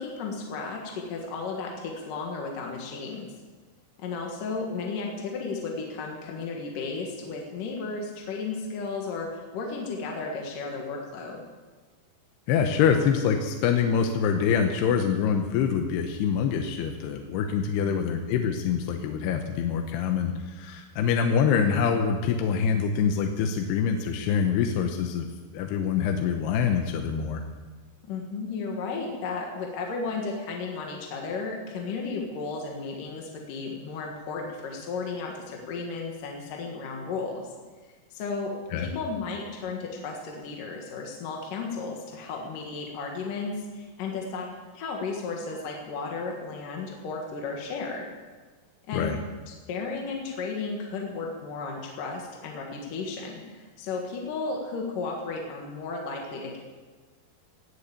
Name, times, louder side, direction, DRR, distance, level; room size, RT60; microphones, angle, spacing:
voice 1, 0.0-3.3 4.0-11.4 28.1-37.5 38.1-48.1 48.9-49.1 49.5-56.6, left 4 dB, 60° left, 0 dB, 3.0 m, -34 dB
voice 2, 12.5-25.3 25.5-27.4 38.7-38.9 48.9-49.2, left 7 dB, 85° left, 4 dB, 3.0 m, -25 dB
18.5 x 8.1 x 8.4 m, 1.4 s
omnidirectional pair, 4.8 m